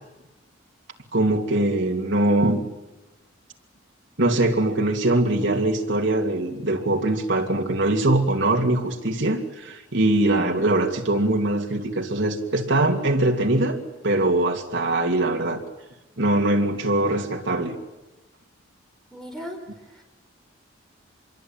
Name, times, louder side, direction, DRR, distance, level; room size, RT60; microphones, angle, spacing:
voice 1, 1.1-2.6 4.2-13.8 14.0-15.6 16.2-17.7, right 2 dB, 60° right, 2 dB, 2.7 m, -22 dB
voice 2, 19.1-19.6 19.9-20.0, equal, 5° left, 1 dB, 5.2 m, -37 dB
25.0 x 22.5 x 9.0 m, 1.0 s
head